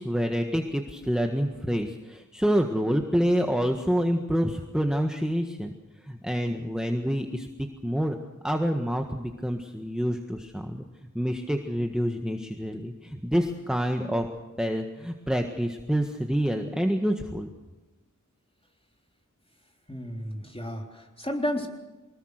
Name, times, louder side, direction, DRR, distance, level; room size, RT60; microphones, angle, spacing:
voice 1, 0.0-5.7 6.0-8.2 8.4-10.8 11.1-14.3 14.6-17.5, equal, ahead, 4 dB, 1.6 m, -27 dB
voice 2, 19.9-21.7, equal, 20° left, 1 dB, 3.8 m, -32 dB
24.5 x 20.0 x 6.6 m, 1.1 s
wide cardioid pair, 50°, 31 cm